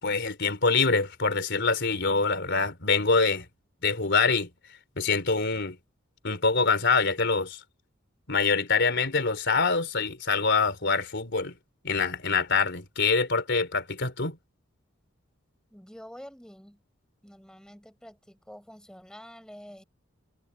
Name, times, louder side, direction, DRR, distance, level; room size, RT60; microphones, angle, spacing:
voice 1, 0.0-3.5 3.8-4.5 5.0-5.8 6.2-7.6 8.3-11.6 11.8-14.4, left 4 dB, 60° left, 4.0 m, -25 dB
voice 2, 15.7-16.8 17.2-19.8, equal, 5° left, 6.4 m, -47 dB
head